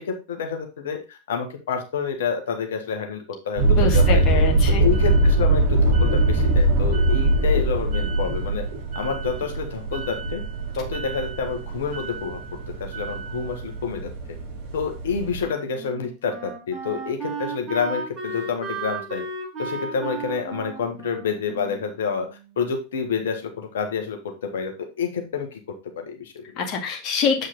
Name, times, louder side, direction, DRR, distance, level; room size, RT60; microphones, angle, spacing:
voice 1, 0.0-4.2 4.6-8.6 8.9-10.4 10.7-12.4 12.8-14.1 14.7-19.2 19.6-22.3 22.6-25.6 26.0-26.4, left 6 dB, 60° left, 4 dB, 1.7 m, -28 dB
sound 1, 3.6-15.4, right 2 dB, 40° right, 5.1 m, -22 dB
voice 2, 3.7-4.8 26.6-27.5, left 5 dB, 35° left, 2 dB, 2.0 m, -25 dB
Wind instrument woodwind instrument, 15.3-22.6, right 3 dB, 25° right, 2.5 m, -34 dB
8.1 x 4.9 x 4.0 m, 0.29 s
figure-of-eight pair, 90°, 0 cm